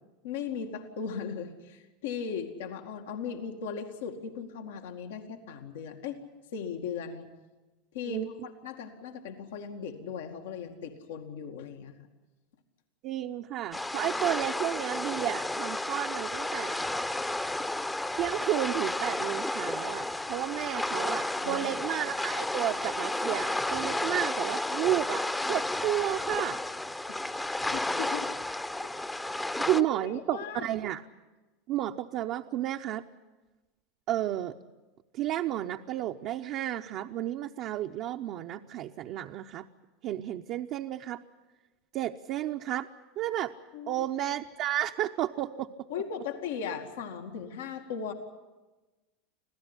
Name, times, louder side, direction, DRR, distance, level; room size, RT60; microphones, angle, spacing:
voice 1, 0.2-6.2 6.5-7.3 7.9-11.9 21.4-21.7 24.0-24.1 27.1-28.3 28.8-28.9 29.4-30.7 43.7-44.1 45.9-48.1, left 6 dB, 85° left, 4 dB, 2.1 m, -38 dB
voice 2, 13.0-16.9 18.2-26.6 29.7-31.0 31.7-33.0 34.1-34.5 35.1-39.7 40.0-41.2 41.9-42.9 43.2-43.5 43.9-45.7, right 13 dB, 50° right, 3 dB, 0.7 m, -32 dB
sound 1, 13.7-29.8, left 1 dB, 10° left, 0.8 m, -32 dB
26.0 x 16.0 x 9.9 m, 1.2 s
supercardioid pair, 120°, 0 cm